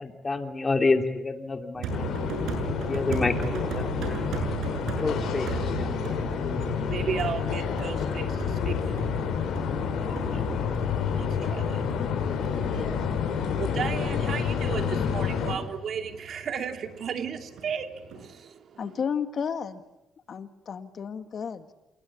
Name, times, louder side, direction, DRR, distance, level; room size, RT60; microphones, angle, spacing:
voice 1, 0.0-2.1 2.9-4.2 5.0-6.1, left 3 dB, 25° left, 2.9 m, -28 dB
sound 1, 1.8-18.3, right 6 dB, 80° right, 7.2 m, -37 dB
sound 2, 1.9-15.5, left 7 dB, 75° left, 5.8 m, -29 dB
voice 2, 6.8-19.0, right 7 dB, 60° right, 2.7 m, -36 dB
voice 3, 18.8-19.8 20.3-21.7, left 7 dB, 50° left, 2.0 m, -32 dB
27.5 x 21.0 x 8.6 m
cardioid pair, 90°, 0 cm